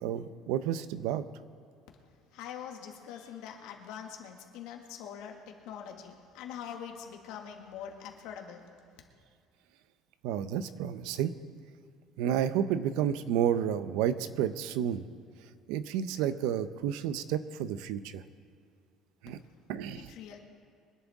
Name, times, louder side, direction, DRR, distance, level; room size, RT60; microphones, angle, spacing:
voice 1, 0.0-1.2 10.2-11.3 12.2-15.0 15.7-18.2 19.2-19.4 19.7-20.1, right 9 dB, 90° right, 13 dB, 0.6 m, -31 dB
voice 2, 2.0-8.6 20.0-20.4, left 8 dB, 75° left, 2 dB, 1.9 m, -44 dB
23.5 x 11.0 x 3.6 m, 2.2 s
cardioid pair, 175°, 0 cm